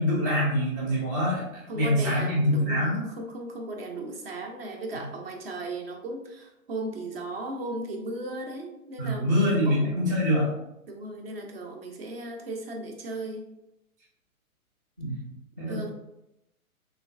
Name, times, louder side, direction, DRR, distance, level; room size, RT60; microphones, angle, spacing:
voice 1, 0.0-3.0 9.0-10.5 15.0-15.9, equal, 15° right, -8 dB, 0.3 m, -25 dB
voice 2, 1.7-9.9 10.9-13.5 15.7-15.9, right 2 dB, 45° right, 2 dB, 0.7 m, -36 dB
3.2 x 3.0 x 2.5 m, 0.87 s
figure-of-eight pair, 125°, 42 cm